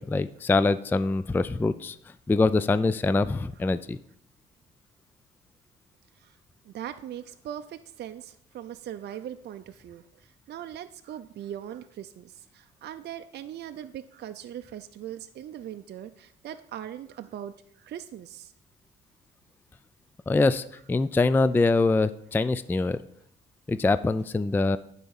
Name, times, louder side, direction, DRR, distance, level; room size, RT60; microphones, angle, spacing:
voice 1, 0.0-2.0 2.3-4.0 20.3-23.0 23.7-24.8, left 3 dB, 10° left, 14 dB, 0.3 m, -24 dB
voice 2, 6.7-18.5, right 10 dB, 55° right, 8 dB, 0.5 m, -40 dB
9.5 x 4.2 x 7.1 m, 0.71 s
cardioid pair, 90°, 20 cm